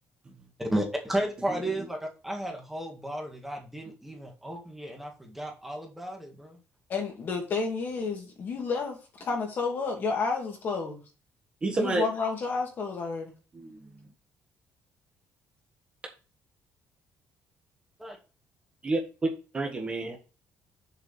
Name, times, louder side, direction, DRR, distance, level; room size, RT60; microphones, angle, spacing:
voice 1, 0.6-6.6 18.0-18.2, right 1 dB, 5° right, 1 dB, 1.8 m, -33 dB
voice 2, 1.5-1.8 11.6-12.0 13.5-14.0 18.8-19.3 19.5-20.2, right 2 dB, 20° right, 2 dB, 1.7 m, -30 dB
voice 3, 6.9-11.0 11.7-13.3, left 4 dB, 40° left, 2 dB, 2.3 m, -31 dB
6.9 x 5.0 x 6.6 m, 0.33 s
cardioid pair, 175°, 5 cm